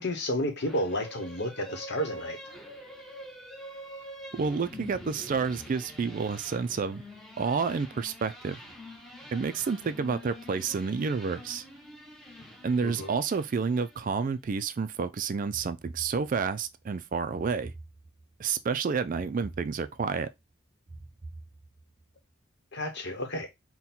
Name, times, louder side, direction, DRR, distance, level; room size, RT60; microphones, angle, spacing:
voice 1, 0.0-2.4 12.8-13.1 22.7-23.5, left 1 dB, 55° left, 1.0 m, -31 dB
sound 1, 0.6-14.2, equal, ahead, 1.0 m, -46 dB
voice 2, 4.4-7.0 7.4-8.6 9.3-11.6 12.6-17.7 18.4-20.3, right 5 dB, 40° right, 0.3 m, -29 dB
sound 2, 15.5-16.7 17.3-18.4 19.1-20.2 20.9-22.0, right 2 dB, 15° right, 1.3 m, -46 dB
3.9 x 2.2 x 4.2 m
head